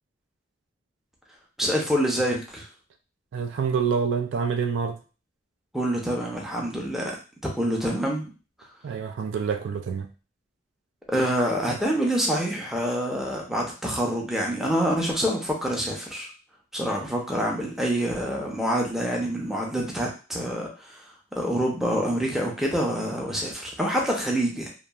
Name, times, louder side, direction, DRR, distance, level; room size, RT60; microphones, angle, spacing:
voice 1, 1.6-2.6 5.7-7.1 7.6-8.3 11.1-16.3 16.7-21.0 21.3-24.7, equal, ahead, 0.5 m, -26 dB
voice 2, 3.3-5.0 8.8-10.1, right 6 dB, 70° right, 0.3 m, -27 dB
2.9 x 2.4 x 2.3 m
head